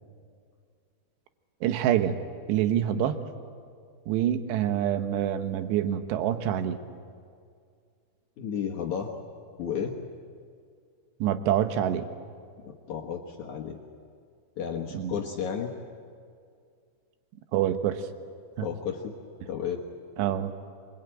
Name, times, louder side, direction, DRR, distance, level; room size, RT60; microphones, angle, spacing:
voice 1, 1.6-2.2 2.5-3.2 4.1-6.8 11.2-12.1 14.9-15.1 17.5-18.1 18.6-18.7 20.2-20.5, right 10 dB, 75° right, 9 dB, 3.1 m, -26 dB
voice 2, 8.4-9.1 9.6-9.9 12.6-13.8 14.6-15.7 18.6-19.1 19.5-19.8, left 7 dB, 65° left, 1 dB, 1.9 m, -32 dB
25.0 x 22.0 x 9.0 m, 2.2 s
omnidirectional pair, 5.2 m